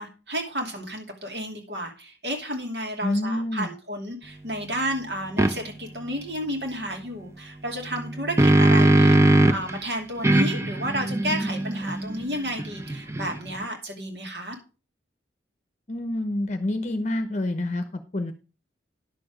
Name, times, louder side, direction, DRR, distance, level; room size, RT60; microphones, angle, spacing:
voice 1, 0.0-14.6, equal, 65° right, 2 dB, 2.8 m, -32 dB
voice 2, 3.0-3.7 15.9-18.3, left 1 dB, 40° left, 7 dB, 0.8 m, -27 dB
sound 1, 5.4-5.5 7.9-9.7 10.2-13.6, right 1 dB, 15° right, 0.6 m, -20 dB
10.5 x 6.9 x 5.0 m, 0.33 s
head